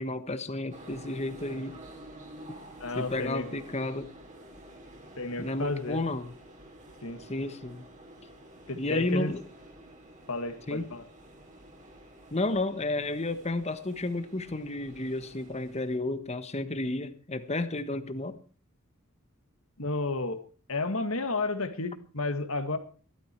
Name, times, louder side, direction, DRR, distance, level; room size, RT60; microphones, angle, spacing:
voice 1, 0.0-1.8 2.9-4.1 5.4-6.3 7.2-7.9 8.8-9.4 10.7-10.9 12.3-18.4, left 2 dB, 30° left, 1.3 m, -32 dB
sound 1, 0.7-16.0, right 1 dB, 35° right, 3.2 m, -50 dB
voice 2, 2.8-3.5 5.2-6.0 7.0-7.2 8.7-9.3 10.3-11.0 19.8-20.4 20.7-22.8, left 3 dB, 65° left, 2.0 m, -32 dB
15.5 x 13.0 x 4.6 m
head